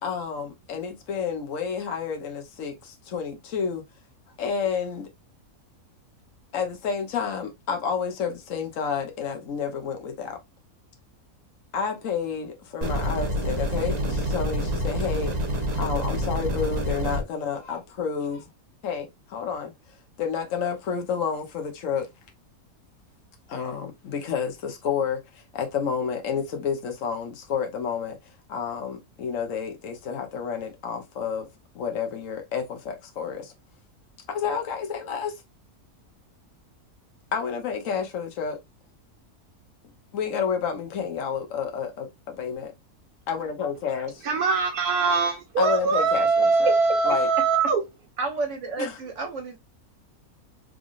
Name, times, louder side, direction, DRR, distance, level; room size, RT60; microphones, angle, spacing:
voice 1, 0.0-3.8 4.4-5.1 6.5-10.4 11.7-15.3 15.7-18.5 18.8-19.7 20.2-22.1 23.5-28.2 28.5-31.5 31.7-33.5 34.3-35.3 37.3-38.6 40.1-42.7 43.3-44.2 45.6-46.7 47.0-47.3 48.8-49.0, left 6 dB, 60° left, 1.3 m, -30 dB
sound 1, 12.8-17.2, equal, 30° right, 0.9 m, -27 dB
voice 2, 44.2-47.8, right 4 dB, 85° right, 1.3 m, -22 dB
voice 3, 48.2-49.6, right 3 dB, 55° right, 1.4 m, -31 dB
3.7 x 3.4 x 2.4 m
omnidirectional pair, 1.6 m